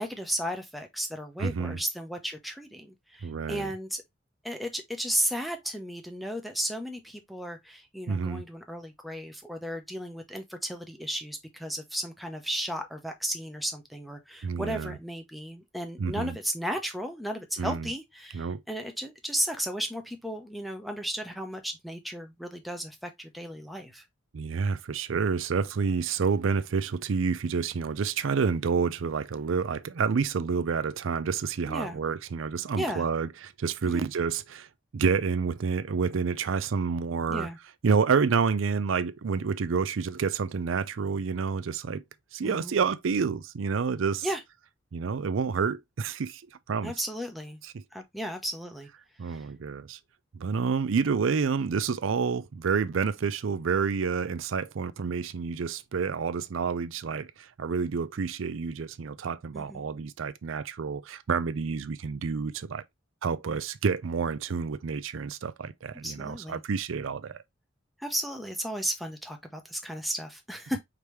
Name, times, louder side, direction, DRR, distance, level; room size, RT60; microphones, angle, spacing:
voice 1, 0.0-4.0 4.4-24.0 31.7-32.0 32.8-33.1 33.9-34.1 37.3-37.6 42.4-42.7 44.2-44.4 46.8-47.6 47.9-48.9 49.3-49.4 59.5-59.9 66.0-66.6 68.0-70.8, equal, ahead, 0.7 m, -34 dB
voice 2, 1.4-1.8 3.2-3.7 8.1-8.4 14.4-15.0 16.0-16.4 17.6-17.9 18.3-18.6 24.3-34.7 34.9-37.5 37.8-42.0 42.3-44.3 44.9-46.4 46.7-46.9 47.6-47.8 49.2-50.0 50.3-62.8 63.2-67.4, right 5 dB, 90° right, 0.5 m, -29 dB
5.1 x 2.9 x 3.2 m
head